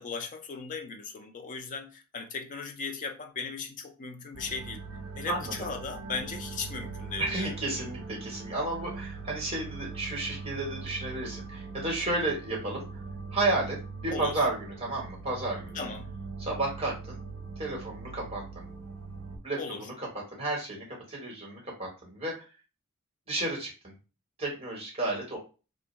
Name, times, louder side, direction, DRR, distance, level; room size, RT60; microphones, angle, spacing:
voice 1, 0.0-4.8 5.2-7.5 14.1-14.4 15.7-16.1 19.6-19.9, left 5 dB, 35° left, 0.4 m, -37 dB
sound 1, 4.3-19.4, right 4 dB, 60° right, 0.6 m, -41 dB
voice 2, 5.3-5.7 7.2-12.9 13.3-13.8 14.0-15.9 16.4-17.2 17.6-18.6 19.3-22.5 23.3-23.9 24.4-25.4, right 2 dB, 25° right, 1.0 m, -32 dB
2.5 x 2.1 x 3.0 m
head